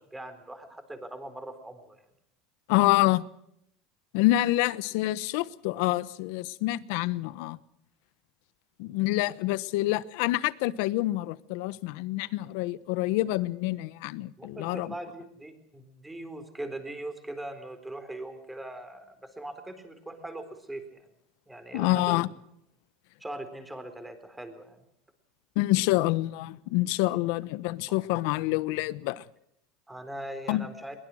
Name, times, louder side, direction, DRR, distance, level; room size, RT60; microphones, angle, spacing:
voice 1, 0.0-2.1 14.4-21.1 21.5-22.2 23.2-24.8 29.9-30.9, right 1 dB, 10° right, 4.0 m, -41 dB
voice 2, 2.7-3.2 4.1-7.6 8.8-14.9 21.7-22.3 25.5-29.2 30.5-30.7, left 17 dB, 70° left, 1.0 m, -27 dB
22.5 x 21.0 x 6.4 m
supercardioid pair, 135°, 0 cm